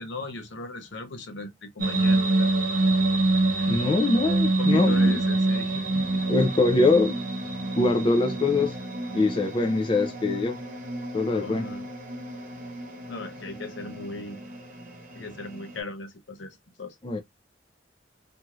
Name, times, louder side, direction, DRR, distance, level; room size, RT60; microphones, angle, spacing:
voice 1, 0.0-2.5 3.5-3.7 4.4-6.2 11.3-11.9 13.1-14.4 15.1-17.0, left 2 dB, 65° left, 0.8 m, -38 dB
sound 1, 1.8-15.8, right 2 dB, 45° right, 0.8 m, -27 dB
voice 2, 3.7-5.2 6.3-7.2 7.8-8.8 9.1-10.6 11.1-11.6 17.0-17.2, left 3 dB, 25° left, 0.4 m, -23 dB
2.6 x 2.4 x 3.0 m
head